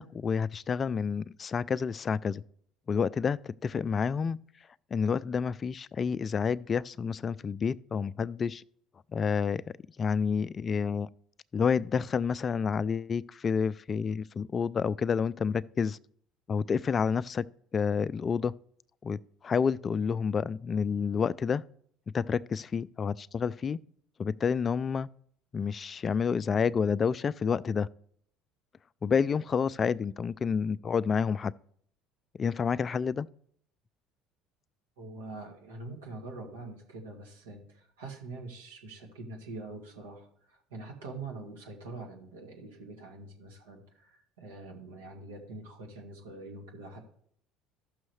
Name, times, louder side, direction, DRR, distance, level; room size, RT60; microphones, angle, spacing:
voice 1, 0.0-2.4 2.9-4.4 4.9-8.6 9.1-9.6 10.0-11.1 11.5-16.0 16.5-17.4 17.7-18.5 19.0-19.2 19.4-21.6 22.1-23.8 24.2-25.1 25.5-27.9 29.0-31.5 32.4-33.3, left 6 dB, 35° left, 0.3 m, -29 dB
voice 2, 35.0-47.0, right 3 dB, 90° right, 2.1 m, -44 dB
14.0 x 6.3 x 3.2 m
hypercardioid pair, 70°, 0 cm